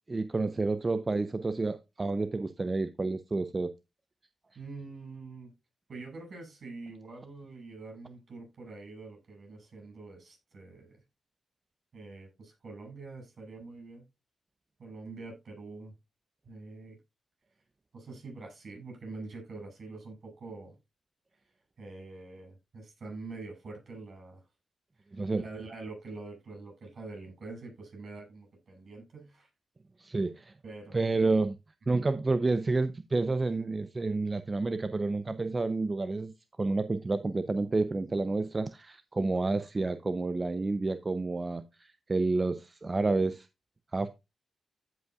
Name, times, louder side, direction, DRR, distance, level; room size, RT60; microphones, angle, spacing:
voice 1, 0.1-3.7 25.1-25.4 30.0-30.5 30.9-31.6 31.9-36.3 36.6-43.5 43.9-44.1, right 3 dB, 30° right, 0.5 m, -29 dB
voice 2, 4.5-5.5 5.9-11.0 11.9-14.0 14.8-15.9 16.4-17.0 17.9-20.8 21.8-24.4 25.0-29.5 30.1-30.2 30.6-31.1 31.9-32.0, right 3 dB, 55° right, 6.2 m, -45 dB
15.0 x 5.3 x 2.3 m
cardioid pair, 85°, 0 cm